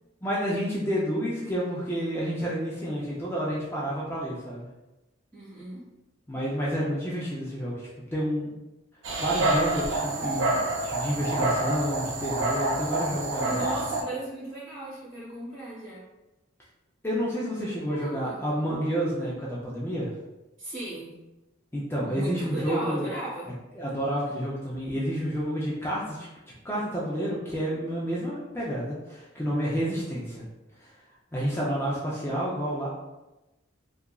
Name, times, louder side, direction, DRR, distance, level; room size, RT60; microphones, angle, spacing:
voice 1, 0.2-4.7 6.3-8.5 9.2-13.7 17.0-20.1 21.7-23.0 23.7-26.3 26.6-30.4 31.3-32.9, equal, 10° left, -6 dB, 0.4 m, -30 dB
voice 2, 5.3-5.8 13.4-16.0 17.9-18.4 20.6-21.1 22.1-23.5, right 1 dB, 45° right, -8 dB, 1.4 m, -36 dB
Dog, 9.0-14.0, right 2 dB, 75° right, 0.5 m, -27 dB
2.8 x 2.4 x 2.3 m, 1.0 s
head